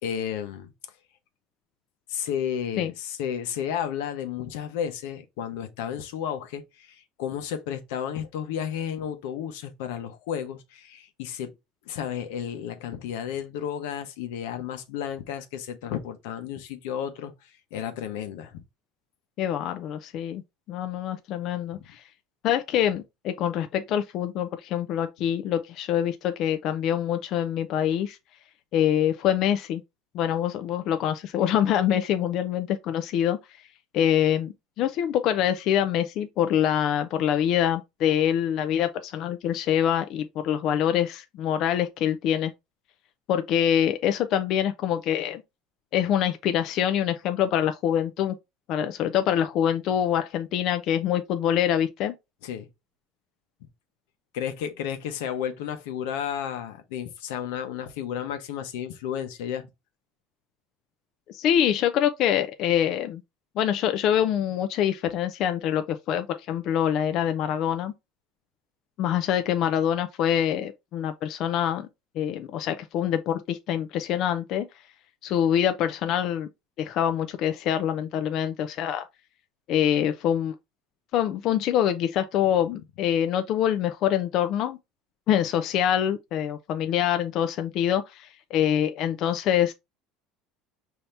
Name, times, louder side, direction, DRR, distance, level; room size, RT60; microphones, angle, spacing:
voice 1, 0.0-0.7 2.1-11.5 11.8-18.6 52.4-52.7 54.3-59.7, left 9 dB, 90° left, 0.9 m, -32 dB
voice 2, 19.4-20.4 20.7-22.0 22.4-28.2 28.7-29.8 30.1-33.4 33.9-42.5 43.3-45.4 45.9-48.3 48.7-52.1 61.3-63.2 63.6-67.9 69.0-71.9 72.2-74.7 75.2-76.5 76.8-79.0 79.7-80.5 81.1-84.8 85.3-89.7, left 10 dB, 50° left, 0.4 m, -25 dB
5.6 x 2.8 x 3.2 m
cardioid pair, 145°, 0 cm